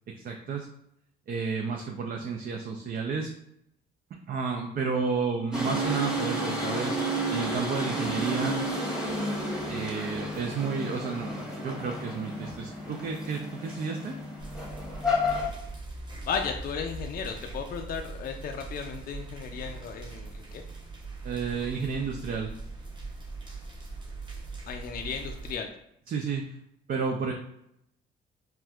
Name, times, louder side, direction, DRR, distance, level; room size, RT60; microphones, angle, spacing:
voice 1, 0.2-0.7 1.3-3.3 4.3-7.0 7.3-8.6 9.7-14.2 21.2-22.5 26.1-26.6 26.9-27.3, right 5 dB, 50° right, 2 dB, 0.4 m, -31 dB
sound 1, 5.5-15.5, equal, 5° right, 1.1 m, -31 dB
sound 2, 14.4-25.6, right 3 dB, 20° right, 0.8 m, -41 dB
voice 2, 16.3-20.6 24.7-25.7, left 6 dB, 50° left, 3 dB, 0.4 m, -35 dB
4.1 x 2.3 x 2.3 m, 0.76 s
cardioid pair, 90°, 20 cm